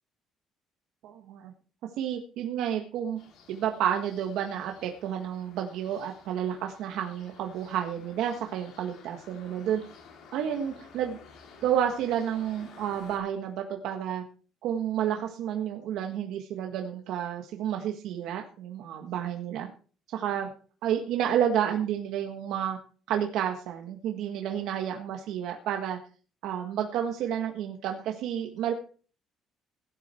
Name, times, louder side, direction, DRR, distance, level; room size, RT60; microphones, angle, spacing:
voice 1, 1.0-1.5 2.0-3.2 3.5-9.8 10.3-11.2 11.6-14.2 14.6-19.7 20.1-20.5 20.8-22.8 23.1-26.0 26.4-28.7, right 9 dB, 75° right, 3 dB, 1.6 m, -30 dB
sound 1, 3.2-13.2, left 6 dB, 65° left, 6.3 m, -53 dB
17.0 x 11.0 x 4.5 m, 0.40 s
cardioid pair, 175°, 0 cm